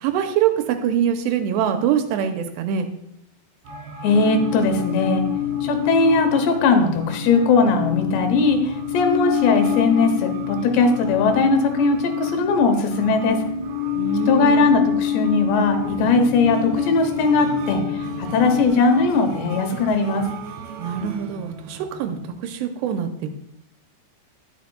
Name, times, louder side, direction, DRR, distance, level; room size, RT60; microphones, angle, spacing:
voice 1, 0.0-2.9 14.0-14.7 20.8-23.3, right 8 dB, 90° right, 6 dB, 2.8 m, -24 dB
sound 1, 3.6-22.3, right 4 dB, 75° right, 3.9 m, -39 dB
voice 2, 4.0-5.2 5.6-13.4 14.3-17.8 18.2-20.3, left 4 dB, 85° left, 5 dB, 3.2 m, -19 dB
sound 2, 4.1-18.7, left 9 dB, 65° left, 1.8 m, -27 dB
11.5 x 9.5 x 2.3 m, 0.78 s
omnidirectional pair, 4.9 m